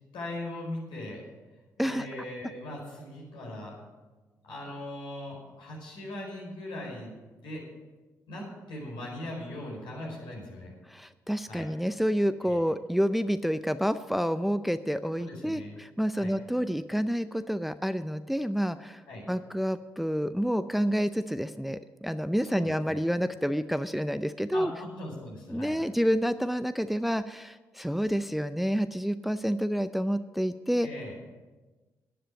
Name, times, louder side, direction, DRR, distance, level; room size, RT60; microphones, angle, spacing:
voice 1, 0.1-1.2 1.8-3.7 4.4-7.6 8.3-10.7 11.5-11.7 12.4-12.6 15.1-15.8 16.2-16.3 19.1-19.2 22.5-23.0 24.5-25.8 30.8-31.1, left 1 dB, 70° left, -2 dB, 4.9 m, -40 dB
voice 2, 10.9-19.0 19.3-24.7 25.5-30.9, equal, ahead, 12 dB, 0.5 m, -29 dB
11.5 x 10.5 x 6.3 m, 1.2 s
hypercardioid pair, 40°, 8 cm